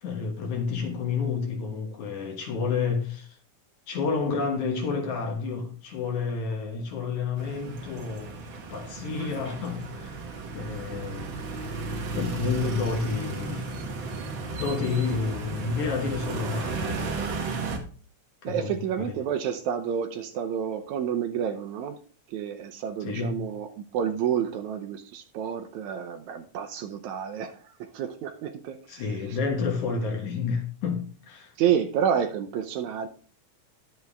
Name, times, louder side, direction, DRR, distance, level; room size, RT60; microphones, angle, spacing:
voice 1, 0.0-3.3 3.9-8.4 8.7-10.2 10.5-11.3 12.1-13.7 14.6-17.1 18.4-18.7 19.0-19.1 23.0-23.5 28.9-31.5, left 5 dB, 75° left, 2.9 m, -30 dB
sound 1, 7.4-17.8, right 3 dB, 50° right, 1.8 m, -34 dB
voice 2, 18.4-22.0 22.3-29.7 31.6-33.1, right 8 dB, 80° right, 2.0 m, -30 dB
10.5 x 7.7 x 3.5 m
omnidirectional pair, 3.5 m